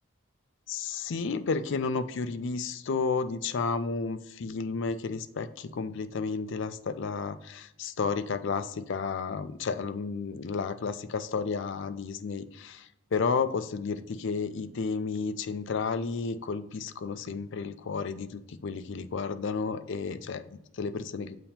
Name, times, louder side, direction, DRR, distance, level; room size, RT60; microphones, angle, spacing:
voice 1, 0.7-21.4, left 5 dB, 55° left, 11 dB, 0.4 m, -32 dB
6.9 x 2.9 x 5.6 m, 0.83 s
head